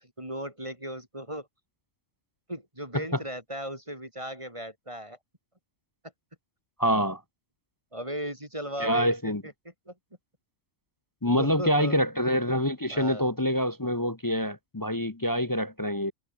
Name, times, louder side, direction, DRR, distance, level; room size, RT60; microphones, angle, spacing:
voice 1, 0.2-1.5 2.5-5.2 7.9-9.9 11.4-12.0 12.9-13.3, equal, 20° right, 4.8 m, -37 dB
voice 2, 6.8-7.2 8.8-9.4 11.2-16.1, equal, 20° left, 0.8 m, -26 dB
omnidirectional pair, 1.5 m